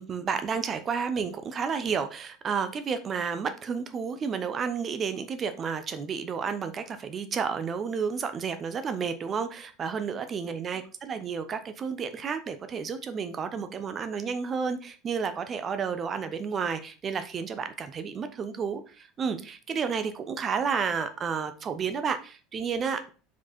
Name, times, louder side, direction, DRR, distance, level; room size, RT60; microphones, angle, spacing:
voice 1, 0.0-23.1, right 6 dB, 30° right, 0.8 m, -31 dB
5.9 x 4.9 x 4.2 m
figure-of-eight pair, 75°, 0 cm